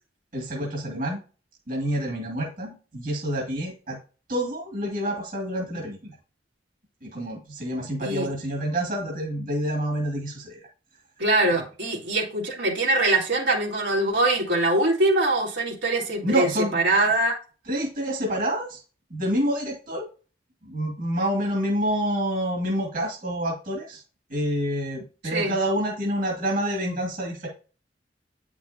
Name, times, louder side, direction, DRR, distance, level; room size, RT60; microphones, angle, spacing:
voice 1, 0.3-1.2 1.7-4.0 4.3-6.1 7.0-10.6 16.2-16.8 17.7-18.8 19.1-20.1 20.6-24.0 24.3-27.5, equal, 50° right, -1 dB, 2.1 m, -27 dB
voice 2, 11.2-17.3 25.2-25.6, right 2 dB, 90° right, -3 dB, 3.3 m, -23 dB
9.2 x 6.1 x 2.7 m, 0.36 s
head